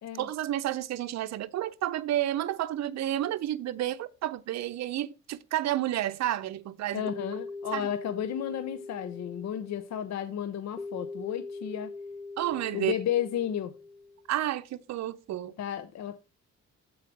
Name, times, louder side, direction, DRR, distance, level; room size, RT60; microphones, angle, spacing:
voice 1, 0.1-7.1 7.7-7.9 12.4-13.0 14.3-15.6, right 13 dB, 65° right, 0.6 m, -31 dB
voice 2, 6.9-11.9 12.7-13.7 15.6-16.2, left 10 dB, 60° left, 0.7 m, -33 dB
sound 1, 7.0-14.3, left 3 dB, 5° right, 0.9 m, -42 dB
7.5 x 4.7 x 4.7 m
cardioid pair, 90°, 30 cm